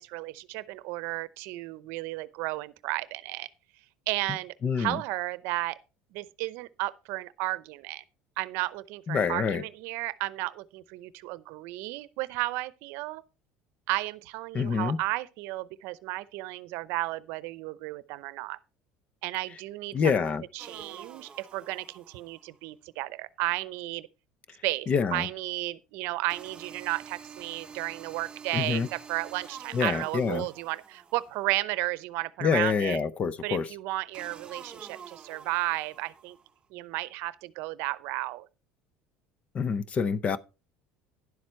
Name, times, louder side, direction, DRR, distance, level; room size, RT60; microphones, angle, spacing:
voice 1, 0.0-3.5 4.1-5.8 6.1-8.0 8.4-13.2 13.9-18.6 19.2-20.1 20.5-24.1 24.6-33.0 33.4-36.4 36.7-38.5, right 20 dB, 70° right, 0.7 m, -33 dB
voice 2, 4.6-5.0 9.1-9.6 14.5-15.0 19.9-20.4 24.9-25.3 28.5-28.9 29.7-30.5 32.4-33.7 39.5-40.4, left 6 dB, 35° left, 0.7 m, -26 dB
sound 1, 20.6-22.6 26.3-31.6 34.1-36.5, right 6 dB, 25° right, 0.9 m, -48 dB
11.0 x 7.4 x 4.4 m
supercardioid pair, 115°, 4 cm